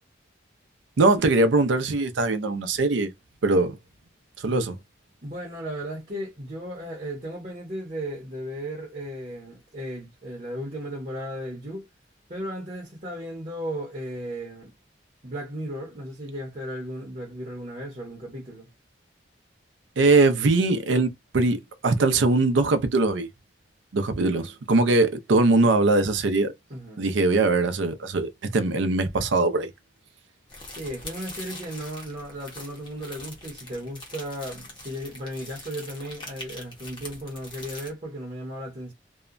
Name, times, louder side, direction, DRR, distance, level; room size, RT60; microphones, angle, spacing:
voice 1, 1.0-3.1 3.4-3.8 4.4-4.8 20.0-23.3 23.9-26.5 27.0-29.7, right 3 dB, 85° right, 0.5 m, -21 dB
voice 2, 5.2-11.8 12.3-14.7 15.2-18.7 26.7-27.1 30.8-38.9, equal, 40° right, 0.8 m, -35 dB
sound 1, 30.5-37.9, left 2 dB, 25° left, 0.8 m, -43 dB
2.7 x 2.2 x 2.4 m
head